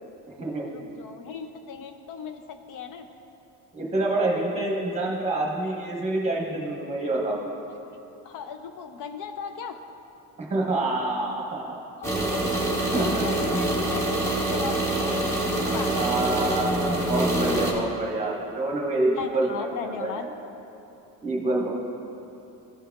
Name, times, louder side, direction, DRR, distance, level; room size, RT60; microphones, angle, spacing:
voice 1, 0.6-3.1 8.2-9.8 12.5-15.2 15.7-15.9 19.2-20.3, left 6 dB, 60° left, 7 dB, 0.5 m, -37 dB
voice 2, 3.7-7.4 10.4-11.8 12.9-13.3 15.1-15.3 15.9-20.3 21.2-21.7, right 2 dB, 20° right, -2 dB, 1.1 m, -27 dB
sound 1, 12.0-17.7, right 1 dB, 5° left, 0.8 m, -25 dB
14.0 x 6.4 x 2.3 m, 2.9 s
cardioid pair, 170°, 37 cm